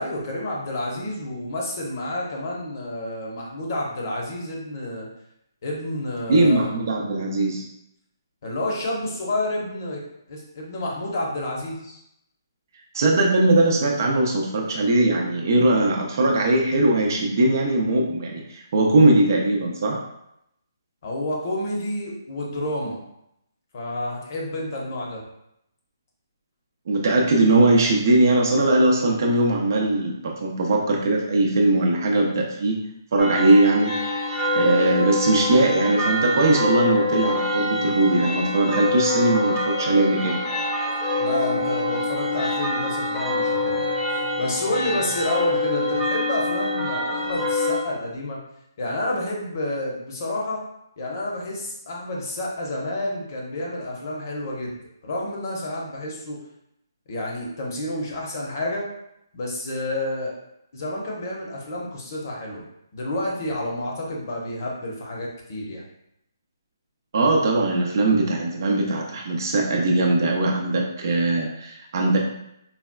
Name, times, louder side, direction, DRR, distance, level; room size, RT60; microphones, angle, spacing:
voice 1, 0.0-5.1 5.6-6.7 8.4-10.0 10.3-12.0 21.0-23.0 23.7-25.2 41.2-48.4 48.8-50.6 51.0-54.8 55.0-56.4 57.1-58.9 59.3-60.3 60.7-62.6 62.9-65.8, left 1 dB, 50° left, -2 dB, 0.8 m, -29 dB
voice 2, 6.3-7.6 12.9-20.0 26.9-32.8 33.1-33.9 34.5-40.4 67.1-72.2, right 2 dB, 55° right, 0 dB, 0.5 m, -20 dB
sound 1, 33.2-47.8, left 2 dB, 5° left, 0.4 m, -25 dB
4.0 x 2.2 x 2.2 m, 0.80 s
hypercardioid pair, 155°, 2 cm